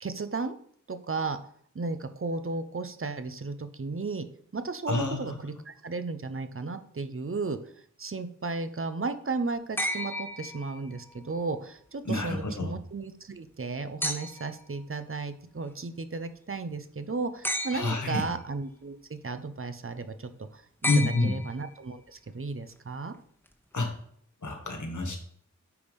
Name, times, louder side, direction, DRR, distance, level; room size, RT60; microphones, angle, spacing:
voice 1, 0.0-0.5 0.9-1.4 1.7-4.3 4.5-7.6 8.0-20.9 21.2-23.2, right 3 dB, 45° right, 10 dB, 0.7 m, -34 dB
voice 2, 4.9-5.3 12.0-12.7 17.7-18.3 20.9-21.3 23.7-23.9 24.4-25.2, left 2 dB, 75° left, 3 dB, 1.6 m, -28 dB
sound 1, 9.8-11.1 14.0-14.6 17.4-18.2 20.8-21.9 23.5-23.6, left 1 dB, 5° left, 1.2 m, -33 dB
9.4 x 3.4 x 5.3 m, 0.63 s
wide cardioid pair, 45°, 30 cm